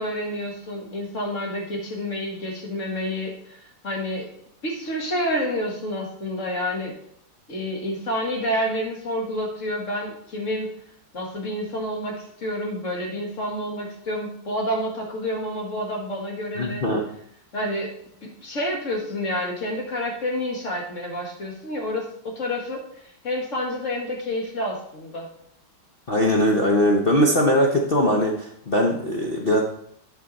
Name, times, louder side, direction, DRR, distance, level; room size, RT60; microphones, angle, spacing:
voice 1, 0.0-4.3 4.6-6.9 7.5-10.7 11.1-16.8 17.5-17.9 18.2-25.3, left 1 dB, 40° left, 0 dB, 1.9 m, -29 dB
voice 2, 16.6-17.0 26.1-29.6, equal, 80° left, 0 dB, 0.5 m, -20 dB
11.0 x 5.5 x 4.1 m, 0.70 s
omnidirectional pair, 2.3 m